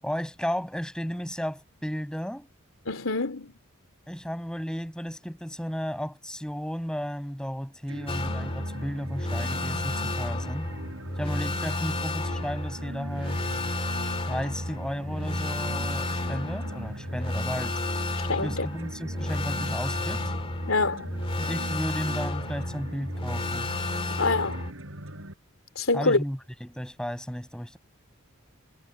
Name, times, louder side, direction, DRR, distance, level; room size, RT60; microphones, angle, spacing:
voice 1, 0.0-2.5 4.1-10.7 11.2-13.4 14.3-17.8 18.4-20.3 21.4-23.7 25.9-27.8, equal, 5° left, 7.2 m, -34 dB
voice 2, 2.9-3.5 18.3-18.7 20.7-21.2 24.2-24.7 25.7-26.2, left 3 dB, 75° left, 3.1 m, -26 dB
sound 1, 7.9-25.3, right 1 dB, 65° right, 7.1 m, -42 dB
sound 2, 8.1-24.7, left 1 dB, 25° left, 2.3 m, -31 dB
head